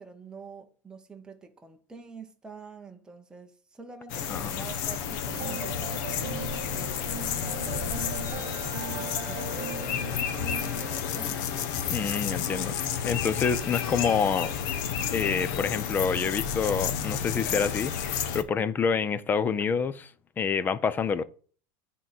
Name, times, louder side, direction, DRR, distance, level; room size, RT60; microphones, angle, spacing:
voice 1, 0.0-8.5 8.9-11.5, right 4 dB, 5° right, 0.8 m, -47 dB
sound 1, 4.1-18.4, left 8 dB, 65° left, 1.1 m, -31 dB
sound 2, 5.3-10.9, right 8 dB, 35° right, 0.9 m, -39 dB
voice 2, 11.9-14.5 15.1-20.1 20.4-21.2, left 6 dB, 20° left, 0.5 m, -27 dB
9.1 x 3.7 x 6.0 m
supercardioid pair, 160°, 11 cm